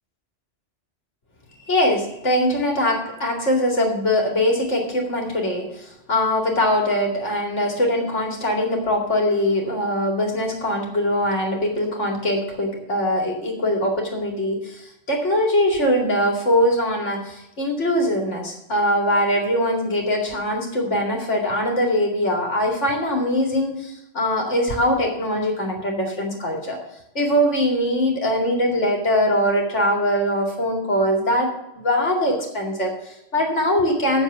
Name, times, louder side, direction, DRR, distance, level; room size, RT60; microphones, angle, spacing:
voice 1, 1.7-26.8 27.1-31.5 31.7-34.2, left 1 dB, 80° left, 1 dB, 2.7 m, -22 dB
8.1 x 6.9 x 8.0 m, 0.87 s
omnidirectional pair, 1.2 m